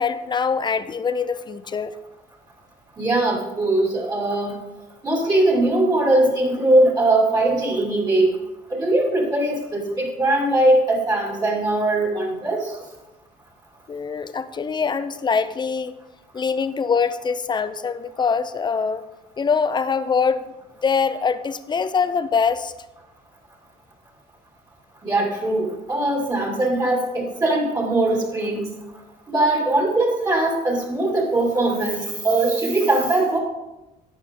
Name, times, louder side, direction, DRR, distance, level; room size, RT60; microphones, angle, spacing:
voice 1, 0.0-2.0 13.9-15.9 16.3-19.0 19.4-20.5 20.8-22.7, left 5 dB, 25° left, 12 dB, 0.6 m, -23 dB
voice 2, 3.0-4.5 5.0-8.3 8.7-12.8 25.0-28.7 29.3-33.4, right 2 dB, 20° right, -1 dB, 2.7 m, -20 dB
11.0 x 8.9 x 3.7 m, 0.99 s
cardioid pair, 110°, 17 cm